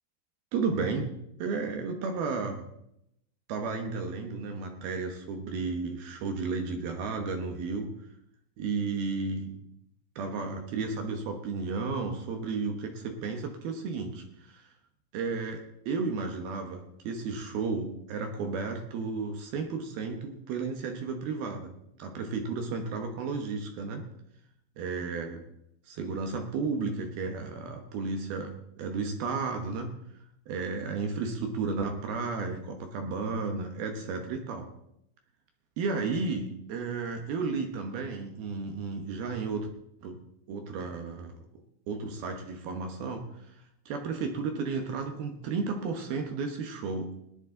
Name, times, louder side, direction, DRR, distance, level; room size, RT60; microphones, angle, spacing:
voice 1, 0.5-2.7 3.5-7.9 8.6-9.5 10.2-14.7 15.1-21.7 22.0-24.1 24.8-25.4 25.9-30.0 30.5-34.7 35.8-39.7 40.0-40.2 40.5-41.3 41.9-43.3 43.9-47.2, right 4 dB, 70° right, 5 dB, 2.8 m, -33 dB
18.5 x 10.5 x 3.8 m, 0.76 s
omnidirectional pair, 5.1 m